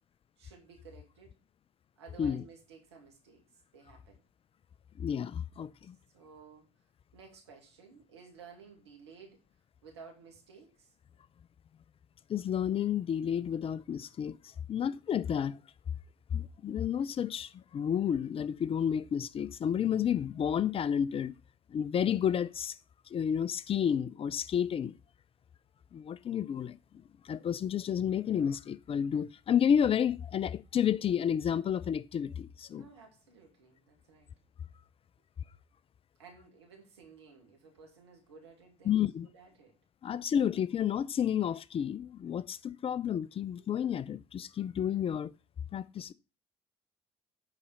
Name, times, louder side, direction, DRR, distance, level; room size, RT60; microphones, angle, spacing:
voice 1, 0.4-1.3 2.0-3.4 3.7-4.2 6.1-6.7 7.1-9.4 9.8-10.9 32.7-34.3 36.2-39.8 43.6-43.7, right 5 dB, 90° right, 2.1 m, -55 dB
voice 2, 5.0-6.0 12.3-14.4 14.7-15.6 16.3-21.3 21.7-22.8 23.1-24.9 25.9-26.8 27.2-32.8 38.9-39.3 40.0-45.3 45.7-46.1, left 8 dB, 45° left, 0.6 m, -31 dB
9.8 x 4.3 x 5.4 m
hypercardioid pair, 55°, 14 cm